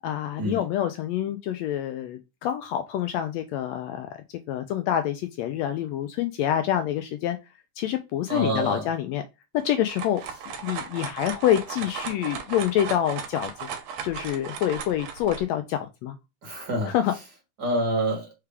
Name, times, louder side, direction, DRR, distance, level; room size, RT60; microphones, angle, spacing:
voice 1, 0.0-4.1 4.5-7.4 7.8-9.2 9.6-10.2 10.6-13.7 14.0-16.2 16.9-17.1, left 11 dB, 80° left, 1.6 m, -27 dB
voice 2, 8.3-8.9 16.4-16.9 17.6-18.3, right 1 dB, 45° right, 1.4 m, -27 dB
sound 1, 9.6-15.4, right 6 dB, 70° right, 1.8 m, -36 dB
4.7 x 3.4 x 3.4 m
omnidirectional pair, 3.4 m